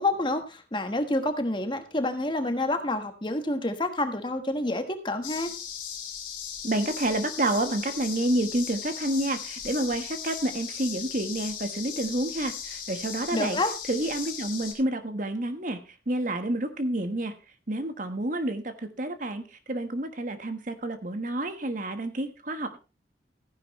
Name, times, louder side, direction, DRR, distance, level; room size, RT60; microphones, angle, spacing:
voice 1, 0.0-5.5 13.3-13.7, left 2 dB, 25° left, 7 dB, 1.3 m, -28 dB
sound 1, 5.2-14.7, left 8 dB, 50° left, 4.6 m, -37 dB
voice 2, 6.6-13.6 13.9-17.3 17.7-22.8, right 1 dB, 45° right, 8 dB, 1.2 m, -29 dB
14.5 x 10.0 x 3.1 m, 0.30 s
head